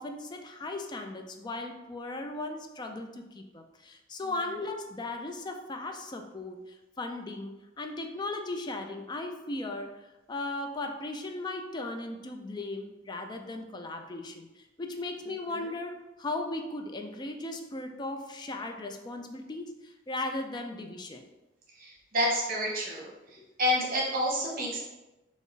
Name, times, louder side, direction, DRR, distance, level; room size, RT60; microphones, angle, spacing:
voice 1, 0.0-9.9 10.3-21.3 23.4-23.5, left 2 dB, 20° left, 4 dB, 0.3 m, -37 dB
voice 2, 21.8-23.1 23.6-24.8, equal, 50° right, -2 dB, 1.0 m, -28 dB
3.7 x 2.4 x 3.9 m, 1.0 s
head